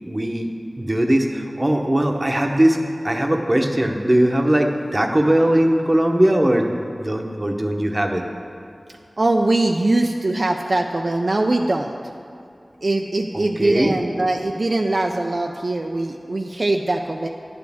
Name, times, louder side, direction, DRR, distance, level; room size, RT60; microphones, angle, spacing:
voice 1, 0.1-2.8 3.0-8.3 13.3-14.0, right 1 dB, 30° right, 3 dB, 0.8 m, -20 dB
voice 2, 9.2-12.0 12.8-17.3, right 2 dB, 65° right, 2 dB, 0.4 m, -21 dB
10.0 x 9.3 x 3.5 m, 2.6 s
wide cardioid pair, 50°, 0 cm